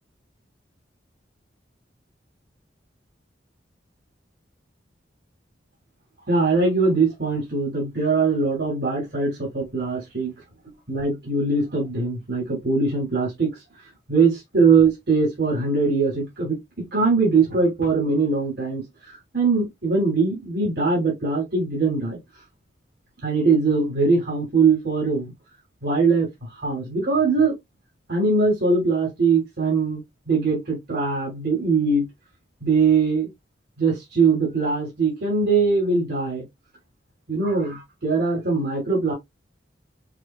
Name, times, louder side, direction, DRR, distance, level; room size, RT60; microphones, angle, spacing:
voice 1, 6.3-10.3 10.6-13.5 14.1-18.8 19.3-22.2 23.2-25.3 25.8-26.3 26.6-27.5 28.1-32.0 32.6-33.3 33.8-36.4 37.3-39.1, right 4 dB, 65° right, 3.2 m, -21 dB
6.3 x 2.4 x 2.3 m
head